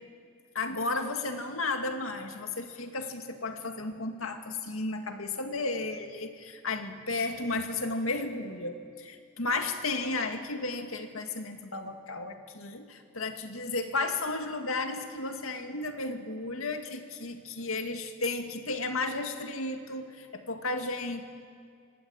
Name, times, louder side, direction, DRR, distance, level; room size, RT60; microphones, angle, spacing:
voice 1, 0.5-21.2, left 3 dB, 90° left, 5 dB, 2.2 m, -33 dB
26.0 x 20.0 x 8.8 m, 2.4 s
head